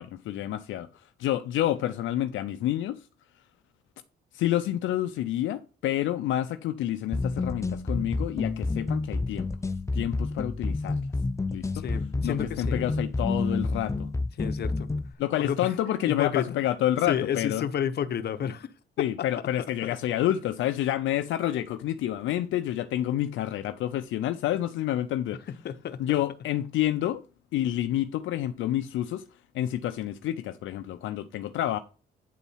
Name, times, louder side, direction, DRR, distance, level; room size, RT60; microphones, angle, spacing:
voice 1, 0.0-3.1 4.3-9.5 9.9-11.0 11.5-11.8 12.2-14.1 15.2-17.6 19.0-25.4 26.0-27.2 27.5-31.8, left 12 dB, 80° left, 0.5 m, -29 dB
sound 1, 7.1-15.1, left 3 dB, 15° left, 0.5 m, -29 dB
voice 2, 11.8-12.9 14.4-14.9 15.4-15.7 16.1-16.6 17.0-18.7 19.2-19.3 19.8-20.0 25.5-26.0, left 8 dB, 55° left, 0.8 m, -31 dB
9.2 x 4.2 x 5.4 m
cardioid pair, 90°, 20 cm